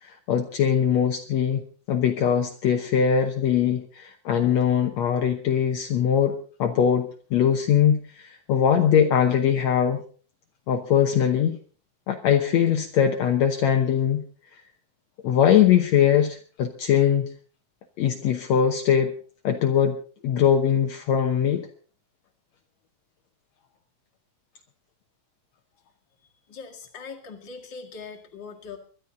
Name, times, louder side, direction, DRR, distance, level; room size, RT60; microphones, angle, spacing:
voice 1, 0.0-1.6 1.9-10.0 10.7-11.6 12.1-14.2 15.2-17.3 18.0-19.1 19.4-20.0 20.2-21.7, left 8 dB, 70° left, 4 dB, 2.2 m, -21 dB
voice 2, 26.5-28.8, left 5 dB, 40° left, 1 dB, 2.5 m, -41 dB
23.5 x 11.5 x 3.9 m, 0.40 s
omnidirectional pair, 3.5 m